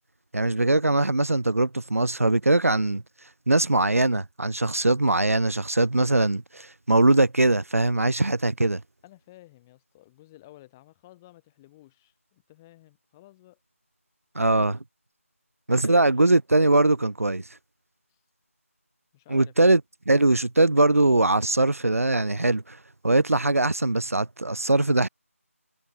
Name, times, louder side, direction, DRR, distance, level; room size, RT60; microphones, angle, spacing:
voice 1, 0.3-3.0 3.5-8.8 14.3-14.8 15.7-17.4 19.3-19.8 20.1-22.8 23.0-25.1, right 2 dB, 75° right, 1.7 m, -21 dB
voice 2, 9.0-13.6 14.5-14.6 15.8-16.0 18.1-18.2 19.1-19.8, left 17 dB, 10° left, 7.4 m, -53 dB
figure-of-eight pair, 170°, 8 cm